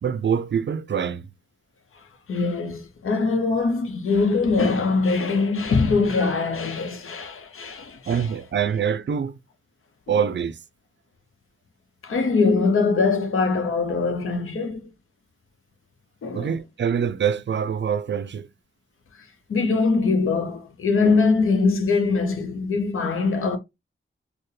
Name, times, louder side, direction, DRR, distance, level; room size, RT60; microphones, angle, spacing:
voice 1, 0.0-1.3 8.1-9.4 10.1-10.6 16.3-18.5, right 7 dB, 60° right, 0.4 m, -25 dB
voice 2, 2.3-8.3 10.1-10.2 12.0-14.9 16.2-16.5 19.5-23.6, left 4 dB, 85° left, 0.7 m, -22 dB
4.5 x 2.1 x 3.2 m
cardioid pair, 50°, 21 cm